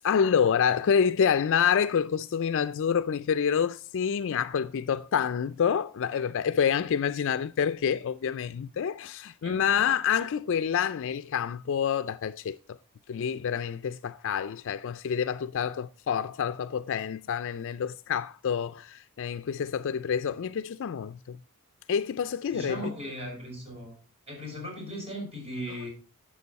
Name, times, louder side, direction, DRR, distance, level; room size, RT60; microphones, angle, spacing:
voice 1, 0.0-12.6 13.1-21.4 21.9-22.9, left 7 dB, 60° left, 0.4 m, -27 dB
voice 2, 9.4-9.8 22.5-23.9 24.3-25.9, equal, 30° right, 5.6 m, -37 dB
11.5 x 7.6 x 4.1 m
head